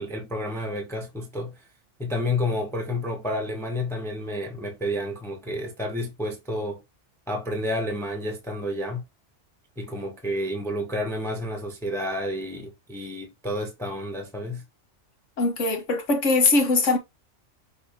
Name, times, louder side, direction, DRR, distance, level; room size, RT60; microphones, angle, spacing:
voice 1, 0.0-1.7 2.0-6.8 7.3-9.0 9.8-14.6, left 1 dB, ahead, 1.0 m, -30 dB
voice 2, 15.4-17.0, left 3 dB, 90° left, 1.6 m, -21 dB
6.3 x 2.3 x 3.6 m
omnidirectional pair, 1.2 m